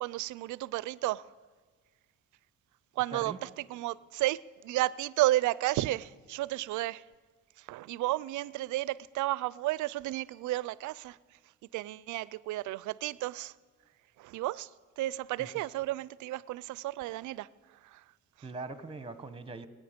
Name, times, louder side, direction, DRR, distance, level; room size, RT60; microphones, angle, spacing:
voice 1, 0.0-1.2 3.0-3.3 3.7-4.4 4.6-7.0 7.7-11.2 11.7-13.5 14.2-14.7 15.0-17.5, right 16 dB, 80° right, 0.4 m, -32 dB
voice 2, 3.1-3.5 15.4-15.7 18.4-19.7, right 3 dB, 20° right, 1.1 m, -42 dB
24.0 x 9.2 x 5.1 m
cardioid pair, 90°, 30 cm